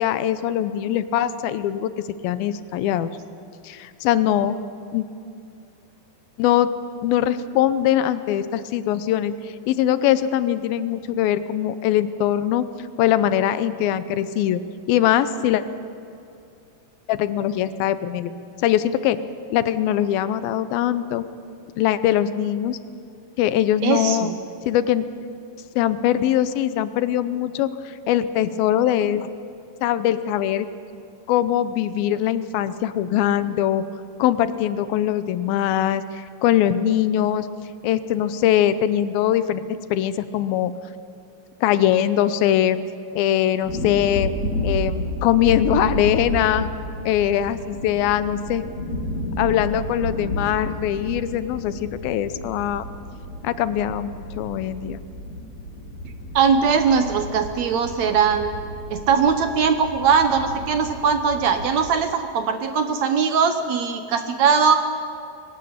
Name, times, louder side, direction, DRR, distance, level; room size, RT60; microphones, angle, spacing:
voice 1, 0.0-1.9 2.2-3.1 3.6-4.6 4.9-5.1 6.4-6.7 7.0-12.6 13.0-14.6 14.9-15.6 17.1-18.3 18.6-19.2 19.5-21.2 21.8-22.8 23.4-24.3 24.6-25.1 25.8-29.3 29.8-30.7 31.3-33.8 34.2-37.5 37.8-39.6 39.9-40.7 41.6-42.8 43.1-44.3 44.6-46.7 47.1-48.6 49.4-52.8 53.4-55.0, left 11 dB, 85° left, 13 dB, 2.6 m, -22 dB
voice 2, 23.8-24.4 56.4-58.5 58.9-64.7, right 6 dB, 70° right, 8 dB, 1.8 m, -20 dB
sound 1, 43.6-61.9, equal, 50° left, 4.2 m, -31 dB
22.5 x 18.5 x 8.6 m, 2.5 s
omnidirectional pair, 4.2 m